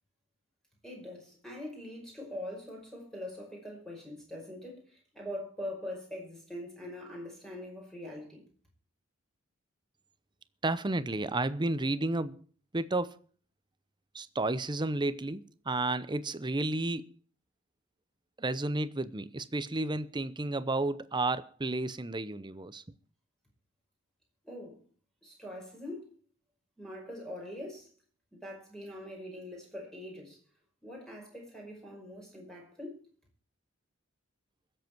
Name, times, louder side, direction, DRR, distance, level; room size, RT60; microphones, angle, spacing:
voice 1, 0.8-8.5 24.4-24.8 25.2-26.1 26.8-27.9 28.3-30.4 30.8-33.1, left 1 dB, 5° left, 5.3 m, -43 dB
voice 2, 10.6-12.4 12.7-13.2 14.1-17.1 18.4-22.8, right 2 dB, 20° right, 0.7 m, -32 dB
22.5 x 7.8 x 4.6 m
head